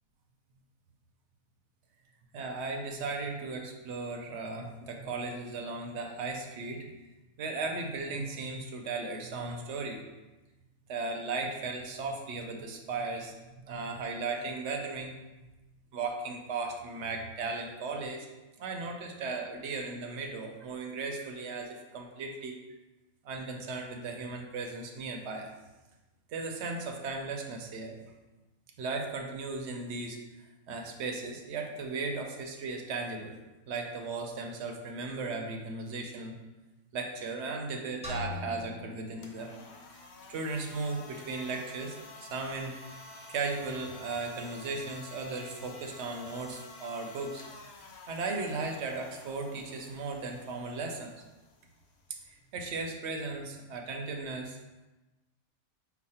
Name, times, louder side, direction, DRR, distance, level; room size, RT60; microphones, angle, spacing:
voice 1, 2.3-6.9 7.4-10.0 10.9-13.3 13.7-15.1 15.9-18.3 18.6-22.6 23.2-25.5 26.3-28.0 28.8-30.2 30.7-33.4 33.7-36.4 36.9-39.5 40.3-42.0 42.2-42.7 43.3-47.4 47.8-51.1 52.3-54.6, right 3 dB, 65° right, 2 dB, 0.8 m, -36 dB
sound 1, 38.0-40.0, left 2 dB, 5° right, 0.7 m, -41 dB
sound 2, 39.1-53.1, left 3 dB, 80° left, 1.1 m, -51 dB
5.0 x 2.2 x 4.1 m, 1.1 s
omnidirectional pair, 1.5 m